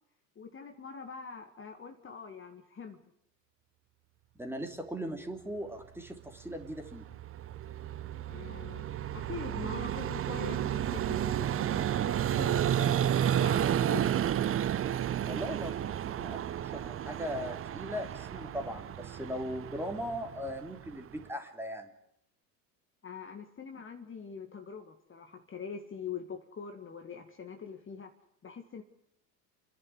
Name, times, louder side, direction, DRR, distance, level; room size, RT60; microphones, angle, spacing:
voice 1, 0.4-3.0 8.3-14.0 23.0-28.1 28.4-28.8, left 6 dB, 25° left, 4 dB, 2.0 m, -44 dB
voice 2, 4.4-7.1 15.3-21.9, equal, 5° right, 4 dB, 3.2 m, -39 dB
Vehicle, 6.6-21.2, right 10 dB, 25° right, 0.8 m, -32 dB
29.0 x 11.0 x 9.8 m, 0.78 s
hypercardioid pair, 85°, 49 cm